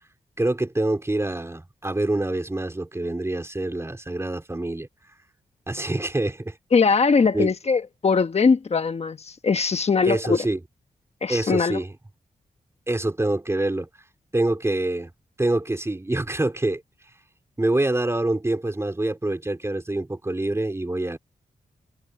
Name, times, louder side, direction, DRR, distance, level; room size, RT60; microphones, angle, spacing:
voice 1, 0.4-4.9 5.7-6.5 7.3-7.5 10.0-10.6 11.3-11.9 12.9-13.9 14.3-15.1 15.4-16.8 17.6-21.2, right 2 dB, 20° right, 4.4 m, -25 dB
voice 2, 6.7-10.4 11.2-11.8, left 5 dB, 50° left, 1.3 m, -21 dB
cardioid pair, 80°, 14 cm